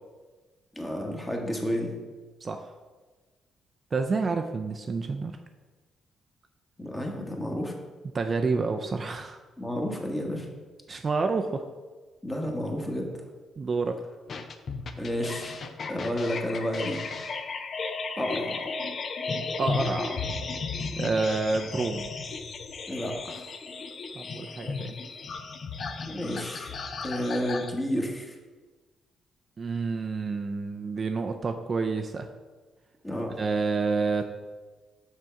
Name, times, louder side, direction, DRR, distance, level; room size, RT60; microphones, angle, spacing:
voice 1, 0.7-1.9 6.8-7.7 9.6-10.5 12.2-13.3 15.0-15.6 15.9-17.1 18.2-18.7 22.9-23.5 26.1-26.7 27.0-28.4 33.0-33.4, equal, 15° left, 1 dB, 1.3 m, -31 dB
voice 2, 2.4-2.7 3.9-5.3 8.1-9.4 10.9-11.6 13.6-14.0 19.6-20.2 21.0-22.1 24.2-25.0 29.6-32.3 33.4-34.3, right 4 dB, 35° right, 5 dB, 0.4 m, -28 dB
sound 1, 14.3-27.7, left 4 dB, 50° left, 0.5 m, -34 dB
6.2 x 3.6 x 5.7 m, 1.3 s
cardioid pair, 90°, 0 cm